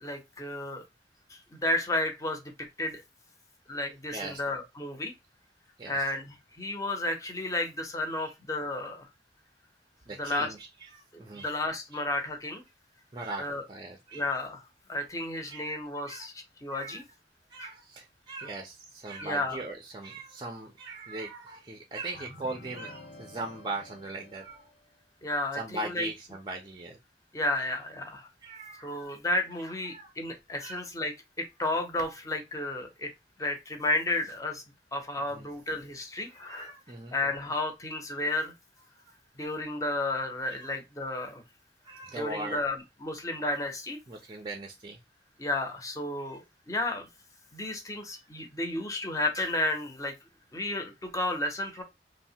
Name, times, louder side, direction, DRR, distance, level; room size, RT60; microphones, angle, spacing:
voice 1, 0.0-0.8 1.3-3.0 3.7-5.1 5.9-9.1 10.2-10.5 11.1-12.6 13.4-13.6 14.1-14.6 14.9-16.3 16.6-17.0 17.6-17.7 19.2-19.6 25.2-26.1 27.3-28.3 28.8-33.1 33.4-34.6 34.9-36.7 37.1-38.5 39.4-41.4 42.1-44.0 45.4-46.4 46.7-47.1 47.5-50.1 50.5-51.8, left 2 dB, 20° left, 4 dB, 0.6 m, -32 dB
voice 2, 10.1-11.5 11.9-12.0 13.1-14.4 15.3-15.7 16.0-16.3 16.7-17.0 17.5-24.7 25.5-27.0 28.4-29.1 29.9-30.1 30.6-30.8 35.3-35.5 36.3-37.1 40.6-40.7 41.8-42.6 44.1-45.0 46.2-46.4 48.1-48.2, right 2 dB, 25° right, 4 dB, 0.4 m, -40 dB
sound 1, 22.1-24.9, left 2 dB, 85° left, 1.0 m, -50 dB
3.1 x 2.0 x 2.7 m, 0.22 s
head